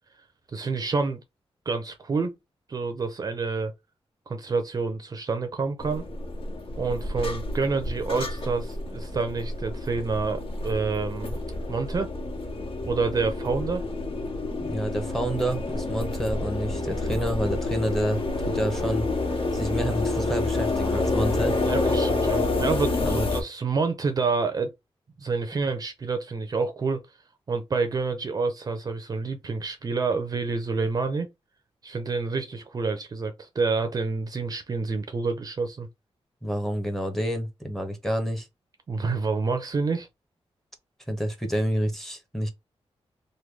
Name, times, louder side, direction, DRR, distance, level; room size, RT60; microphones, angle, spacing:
voice 1, 0.5-1.2 1.7-2.4 2.7-3.7 4.3-6.0 6.8-11.4 11.7-12.1 12.9-13.8 21.6-24.7 25.2-27.0 27.5-31.3 31.8-35.9 38.9-40.1, right 4 dB, 40° right, 0.5 m, -28 dB
sound 1, 5.8-23.4, left 2 dB, 65° left, 1.4 m, -28 dB
voice 2, 14.6-18.2 18.5-19.1 19.5-21.6 23.0-23.3 36.4-38.5 41.1-42.5, right 1 dB, 5° left, 0.7 m, -28 dB
3.2 x 2.2 x 3.3 m
wide cardioid pair, 165°, 10 cm